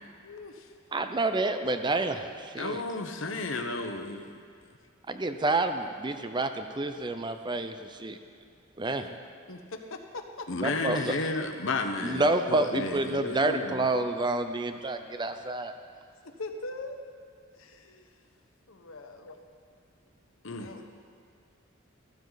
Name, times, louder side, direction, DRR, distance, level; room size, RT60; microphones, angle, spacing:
voice 1, 0.2-0.7 8.9-9.1 9.5-10.7 16.2-17.0 17.5-18.1 18.7-19.3 20.5-20.9, left 2 dB, 85° left, 5 dB, 1.1 m, -42 dB
voice 2, 0.9-2.8 5.1-8.2 8.8-9.1 10.6-11.2 12.0-15.7, right 2 dB, 20° right, 8 dB, 0.6 m, -29 dB
voice 3, 2.6-4.3 10.5-13.9 19.2-19.4 20.4-20.9, left 3 dB, 65° left, 5 dB, 1.0 m, -33 dB
14.5 x 14.0 x 4.1 m, 2.2 s
head